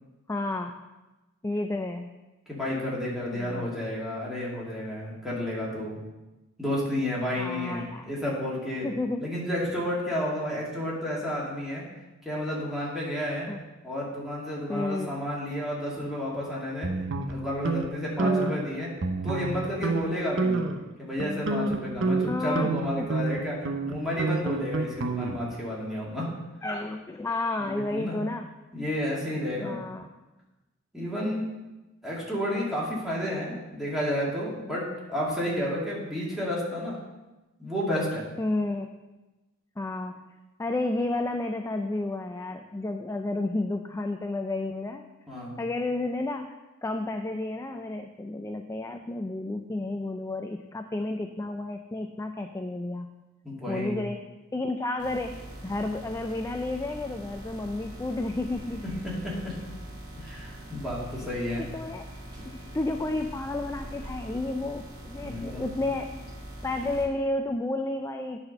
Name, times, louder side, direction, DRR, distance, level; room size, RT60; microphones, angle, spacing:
voice 1, 0.3-0.8 1.4-2.1 3.3-3.7 7.4-8.1 8.8-9.3 13.5-13.6 14.7-15.1 18.2-18.6 22.3-23.1 26.6-28.5 29.6-30.1 38.4-38.9 39.8-40.2 40.6-45.0 45.6-46.4 46.8-53.1 53.7-54.2 54.5-55.3 55.6-58.8 61.6-62.0 62.5-66.1 66.6-68.4, left 2 dB, 15° left, 5 dB, 0.4 m, -31 dB
voice 2, 2.5-6.0 6.6-8.9 9.2-11.9 12.2-13.5 13.8-16.9 17.3-18.9 19.2-20.6 21.0-26.3 27.6-28.2 28.7-29.8 30.9-31.4 32.0-37.0 37.6-38.2 45.3-45.6 53.4-54.0 58.8-59.6 60.2-61.6 65.2-65.7, left 1 dB, ahead, -6 dB, 2.3 m, -31 dB
sound 1, 16.8-17.9 18.2-18.6 19.0-19.6 19.8-20.0 20.4-20.8 21.2-25.5, right 3 dB, 60° right, 0.7 m, -28 dB
sound 2, 55.0-67.1, right 1 dB, 25° right, 2.1 m, -42 dB
9.3 x 4.3 x 6.5 m, 1.1 s
head